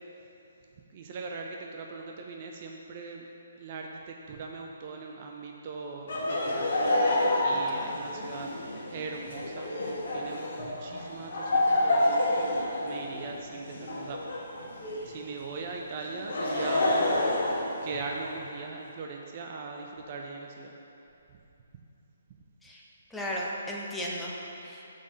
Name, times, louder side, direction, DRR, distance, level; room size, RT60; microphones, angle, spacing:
voice 1, 0.9-3.2 3.5-6.7 7.4-8.5 8.9-9.7 10.1-12.2 12.8-14.2 15.0-16.9 17.8-20.7, right 4 dB, 35° right, 1 dB, 0.6 m, -40 dB
Laughter, 6.1-15.1 16.0-18.4, left 1 dB, 50° left, 1.7 m, -28 dB
voice 2, 7.5-7.9 22.6-22.8 23.1-24.4 24.6-24.8, equal, 5° left, -5 dB, 0.9 m, -35 dB
6.1 x 6.0 x 6.6 m, 2.8 s
figure-of-eight pair, 135°, 0 cm